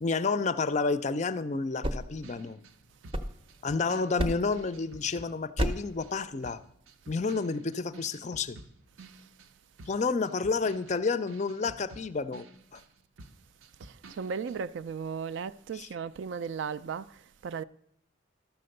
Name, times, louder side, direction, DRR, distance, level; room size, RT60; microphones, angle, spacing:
voice 1, 0.0-2.6 3.6-6.6 7.1-8.6 9.9-12.5 12.7-12.8 15.7-15.9, left 4 dB, 35° left, 0.4 m, -30 dB
sound 1, 1.6-3.8 4.2-4.7 5.6-6.0, equal, 25° right, 0.6 m, -33 dB
sound 2, 1.9-6.2 6.4-12.9 13.2-14.6, right 2 dB, 80° right, 0.7 m, -51 dB
voice 2, 13.8-17.6, right 6 dB, 60° right, 0.3 m, -36 dB
13.0 x 6.8 x 6.5 m
head